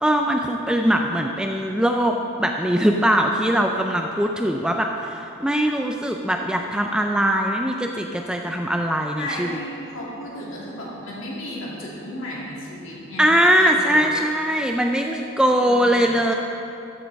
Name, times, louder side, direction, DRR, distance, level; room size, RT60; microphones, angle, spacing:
voice 1, 0.0-9.5 13.2-16.3, equal, 5° right, 3 dB, 0.3 m, -21 dB
voice 2, 9.2-14.1 15.6-16.2, left 1 dB, 65° left, -5 dB, 2.6 m, -34 dB
14.0 x 9.2 x 3.5 m, 2.7 s
head